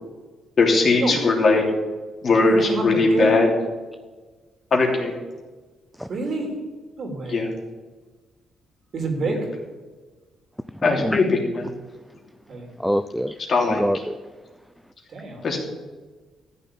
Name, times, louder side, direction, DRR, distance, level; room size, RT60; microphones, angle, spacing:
voice 1, 0.6-1.6 2.2-3.5 4.7-5.1 7.3-7.5 9.2-9.4 10.8-11.7 13.5-13.8 15.4-15.6, left 3 dB, 50° left, 0 dB, 3.2 m, -19 dB
voice 2, 2.4-3.3 6.1-6.5 7.0-7.4 8.9-9.5 12.5-12.7 15.1-15.4, right 3 dB, 55° right, 2 dB, 3.3 m, -27 dB
voice 3, 12.8-13.4 13.7-14.2, equal, ahead, 11 dB, 0.5 m, -24 dB
13.5 x 7.0 x 8.6 m, 1.3 s
cardioid pair, 90°, 0 cm